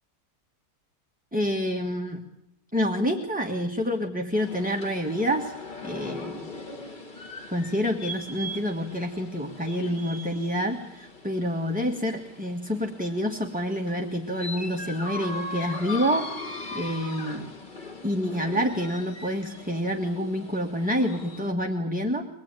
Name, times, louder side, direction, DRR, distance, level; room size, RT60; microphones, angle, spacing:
voice 1, 1.3-2.3 2.7-5.5 5.8-6.5 7.5-16.3 16.7-17.5 18.0-22.3, equal, 5° right, 1 dB, 1.3 m, -28 dB
sound 1, 4.3-21.5, left 2 dB, 30° left, 1.9 m, -40 dB
24.5 x 20.0 x 8.9 m, 0.81 s
omnidirectional pair, 1.7 m